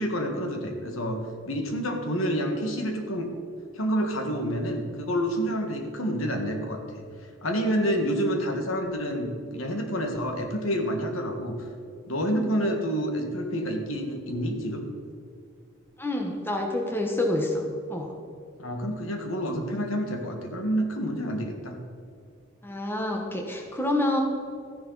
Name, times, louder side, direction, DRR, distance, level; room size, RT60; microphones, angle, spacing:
voice 1, 0.0-3.3 3.7-6.8 7.4-11.7 12.1-14.9 18.6-21.8, equal, 70° left, 3 dB, 1.8 m, -28 dB
voice 2, 16.0-17.6 17.9-18.1 22.6-24.2, left 1 dB, 10° left, 1 dB, 1.3 m, -27 dB
14.0 x 10.5 x 4.1 m, 2.4 s
head